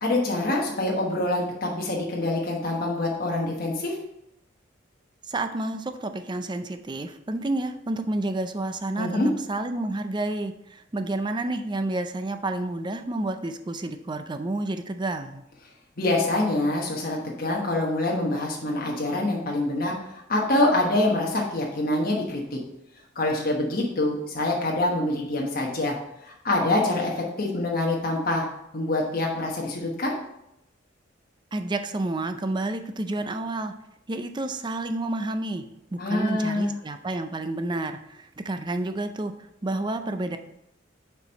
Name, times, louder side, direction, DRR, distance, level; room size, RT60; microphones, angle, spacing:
voice 1, 0.0-3.9 9.0-9.3 16.0-22.6 23.1-25.9 26.2-28.5 28.7-30.1 36.0-36.7, left 2 dB, 50° left, -2 dB, 1.2 m, -25 dB
voice 2, 5.3-9.1 9.5-15.4 31.5-33.7 34.1-35.6 35.9-39.3 39.6-40.4, right 2 dB, 25° right, 8 dB, 0.5 m, -30 dB
6.9 x 4.6 x 5.2 m, 0.83 s
head